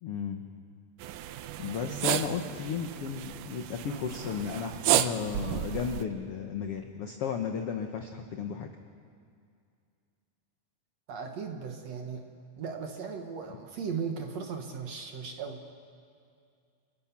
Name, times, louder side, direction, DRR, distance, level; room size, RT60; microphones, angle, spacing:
voice 1, 0.0-0.4 1.6-8.7, left 6 dB, 70° left, 4 dB, 1.3 m, -34 dB
sound 1, 1.0-6.0, right 13 dB, 75° right, 2.0 m, -32 dB
voice 2, 11.1-12.2 12.6-15.6, right 6 dB, 60° right, 4 dB, 2.1 m, -37 dB
29.5 x 20.5 x 6.0 m, 2.3 s
omnidirectional pair, 4.2 m